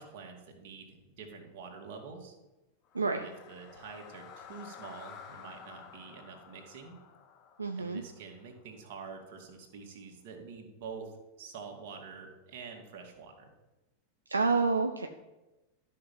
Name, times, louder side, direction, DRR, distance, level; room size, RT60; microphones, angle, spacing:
voice 1, 0.0-2.3 3.1-7.0 7.8-13.5, right 5 dB, 50° right, 2 dB, 2.1 m, -47 dB
sound 1, 2.9-9.0, left 7 dB, 35° left, 1.1 m, -52 dB
voice 2, 2.9-3.3 7.6-8.0 14.3-15.1, right 4 dB, 80° right, 6 dB, 0.5 m, -28 dB
12.5 x 5.9 x 5.4 m, 1.1 s
figure-of-eight pair, 90°, 0 cm